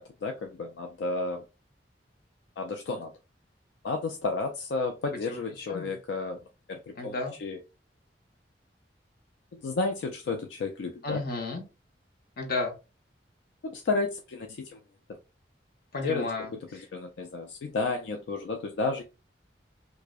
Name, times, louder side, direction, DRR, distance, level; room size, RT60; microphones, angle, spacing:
voice 1, 0.0-1.4 2.6-3.1 3.8-6.4 6.7-7.1 7.4-7.6 9.5-11.2 13.6-14.8 16.0-16.2 16.7-19.0, left 3 dB, 80° left, 0.3 m, -32 dB
voice 2, 5.3-5.9 7.0-7.3 11.0-11.6 12.4-12.7 15.9-16.9, left 3 dB, 60° left, 0.7 m, -33 dB
2.6 x 2.1 x 2.3 m
head